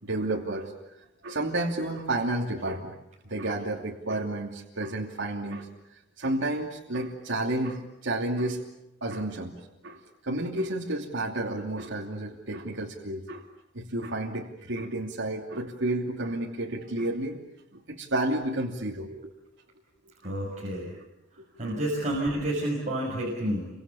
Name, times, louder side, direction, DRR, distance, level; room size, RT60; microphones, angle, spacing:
voice 1, 0.0-0.7 1.2-3.0 3.2-8.6 9.0-9.6 9.8-13.5 13.7-17.4 17.7-19.3 20.2-20.3 21.6-21.8, right 1 dB, 65° right, -2 dB, 2.9 m, -31 dB
voice 2, 20.2-20.9 21.6-23.7, right 1 dB, 40° right, -2 dB, 6.3 m, -29 dB
30.0 x 25.5 x 7.2 m, 0.93 s
head